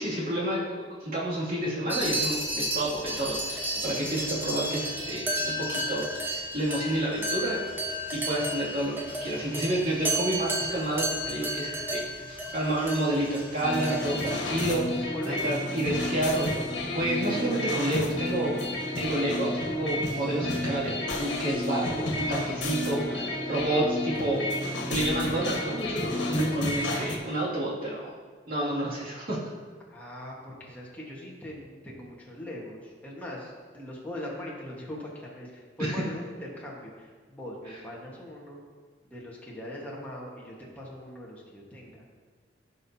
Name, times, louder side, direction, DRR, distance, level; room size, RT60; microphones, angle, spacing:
voice 1, 0.0-7.6 8.1-8.9 9.2-15.1 15.4-18.6 18.9-24.5 24.9-28.2 28.5-29.4 35.8-35.9, right 1 dB, 50° right, -7 dB, 2.4 m, -29 dB
sound 1, 1.9-14.5, equal, 10° right, 1.0 m, -33 dB
sound 2, 13.6-27.2, left 1 dB, 75° left, 1.5 m, -31 dB
voice 2, 15.1-15.6 29.9-38.6 39.0-42.0, left 1 dB, 10° left, -5 dB, 1.4 m, -41 dB
sound 3, 18.9-24.6, right 1 dB, 50° left, 1.2 m, -44 dB
15.5 x 5.5 x 2.8 m, 1.5 s
head